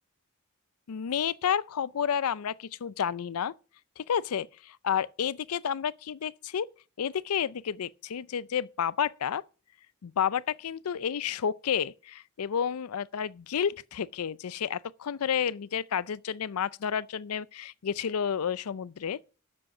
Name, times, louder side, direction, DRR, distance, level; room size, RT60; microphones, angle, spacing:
voice 1, 0.9-3.5 4.0-6.7 7.0-9.4 10.0-19.2, left 8 dB, 85° left, 0.5 m, -30 dB
10.5 x 7.7 x 6.0 m
head